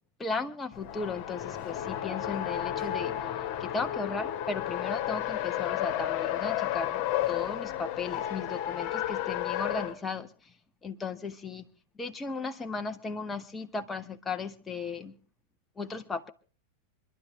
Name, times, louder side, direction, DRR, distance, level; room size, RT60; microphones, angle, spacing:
voice 1, 0.2-3.2 3.6-7.0 7.3-10.5 10.8-11.6 12.0-15.1 15.8-16.3, left 4 dB, 15° left, 1.4 m, -36 dB
Race car auto racing, 0.7-9.9, left 12 dB, 40° left, 2.1 m, -32 dB
26.5 x 11.5 x 2.9 m
figure-of-eight pair, 90°, 0 cm